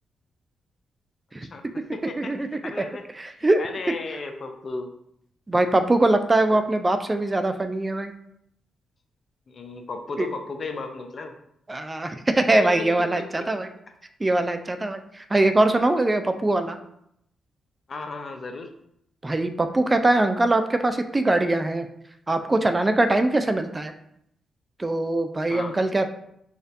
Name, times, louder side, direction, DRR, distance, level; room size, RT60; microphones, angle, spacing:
voice 1, 1.4-3.1 3.3-4.9 6.5-6.6 9.5-11.3 12.6-12.9 13.2-13.5 17.9-18.7 25.5-25.7, left 3 dB, 50° left, 5 dB, 0.5 m, -35 dB
voice 2, 2.2-2.5 3.2-3.6 5.5-8.1 10.2-10.3 11.7-13.7 14.2-16.8 19.2-21.9 22.3-23.9 24.8-26.1, right 2 dB, 25° right, 7 dB, 0.4 m, -22 dB
4.1 x 2.5 x 2.5 m, 0.75 s
hypercardioid pair, 45°, 0 cm